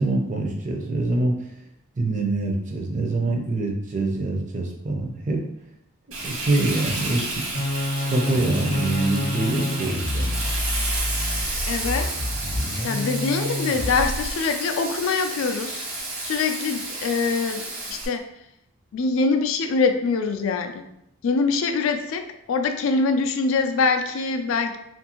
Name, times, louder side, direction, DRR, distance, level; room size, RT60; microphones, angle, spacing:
voice 1, 0.0-1.6 2.0-5.4 6.2-7.6 8.0-10.3, right 2 dB, 35° right, 1 dB, 0.4 m, -25 dB
Frying (food), 6.1-18.1, right 2 dB, 75° right, 1.0 m, -31 dB
sound 1, 7.5-14.3, left 1 dB, 55° left, 0.7 m, -28 dB
voice 2, 11.7-12.1 12.8-15.9 16.2-18.3 18.9-20.9 21.2-24.8, left 4 dB, 70° left, 7 dB, 0.3 m, -24 dB
2.6 x 2.5 x 2.8 m, 0.78 s
head